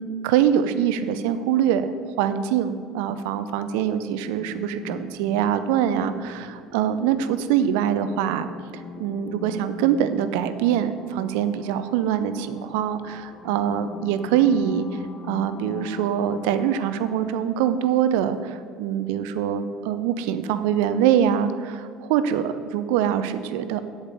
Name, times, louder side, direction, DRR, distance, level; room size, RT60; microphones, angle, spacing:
voice 1, 0.0-8.5 9.0-14.9 15.3-23.8, right 9 dB, 65° right, 11 dB, 0.6 m, -24 dB
sound 1, 4.4-17.1, left 5 dB, 45° left, 0.8 m, -42 dB
8.3 x 8.0 x 6.7 m, 2.2 s
figure-of-eight pair, 65°, 0 cm